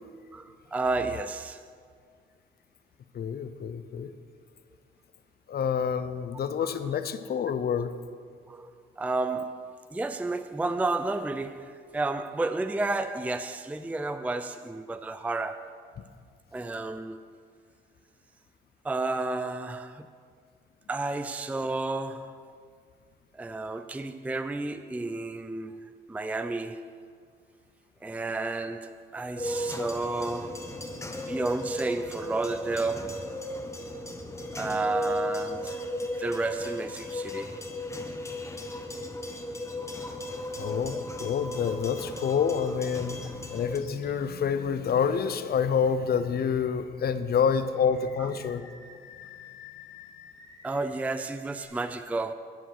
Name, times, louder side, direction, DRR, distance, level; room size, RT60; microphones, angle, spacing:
voice 1, 0.3-1.6 6.6-6.7 8.5-8.7 9.0-15.7 16.5-17.2 18.8-20.1 20.9-22.4 23.4-25.7 26.1-26.9 28.0-30.7 31.3-33.2 34.5-35.8 36.2-37.5 50.6-52.3, right 3 dB, 5° right, 0.4 m, -31 dB
voice 2, 3.1-4.1 5.5-7.9 40.6-48.6, left 7 dB, 50° left, 0.8 m, -28 dB
sound 1, 29.4-43.8, left 1 dB, 15° left, 1.2 m, -36 dB
Animal, 43.7-44.1 44.5-44.7 46.3-47.0 47.7-51.7, left 7 dB, 70° left, 3.0 m, -51 dB
13.0 x 8.9 x 6.0 m
cardioid pair, 90°, 20 cm